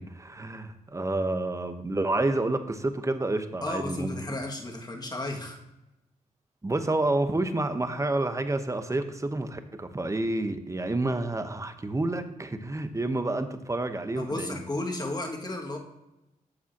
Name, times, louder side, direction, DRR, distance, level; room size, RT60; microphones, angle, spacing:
voice 1, 0.0-4.4 6.6-14.6, right 2 dB, 20° right, 9 dB, 1.0 m, -29 dB
voice 2, 3.6-5.6 14.2-15.8, left 2 dB, 25° left, 1 dB, 2.0 m, -33 dB
10.5 x 7.2 x 2.9 m, 0.94 s
supercardioid pair, 55°, 15 cm